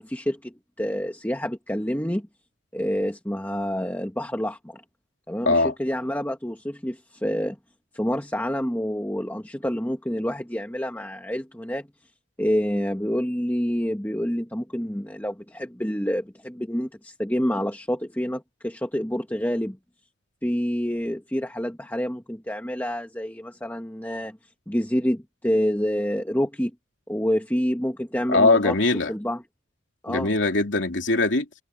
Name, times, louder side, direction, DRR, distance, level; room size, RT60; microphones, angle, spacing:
voice 1, 0.0-2.3 2.7-4.8 5.3-7.6 7.9-11.9 12.4-19.8 20.4-24.4 24.7-26.7 27.1-28.7 29.1-29.4 30.0-30.3, equal, 10° left, 1.5 m, -27 dB
voice 2, 28.3-29.1 30.1-31.5, left 3 dB, 65° left, 2.9 m, -21 dB
head